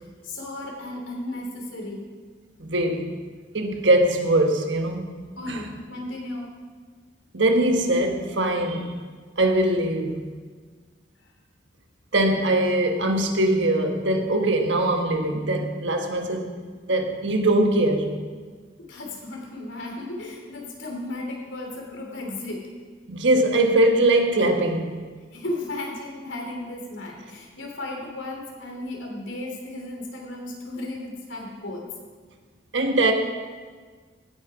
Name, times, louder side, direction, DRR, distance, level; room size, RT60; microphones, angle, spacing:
voice 1, 0.2-2.0 5.4-6.5 18.8-22.7 25.3-31.9, left 2 dB, 80° left, 0 dB, 3.1 m, -34 dB
voice 2, 2.6-3.1 3.5-5.6 7.3-8.9 9.4-10.2 12.1-16.6 16.9-18.1 23.1-25.1 32.7-33.1, right 1 dB, 75° right, 4 dB, 1.4 m, -22 dB
17.0 x 8.9 x 4.9 m, 1.5 s
head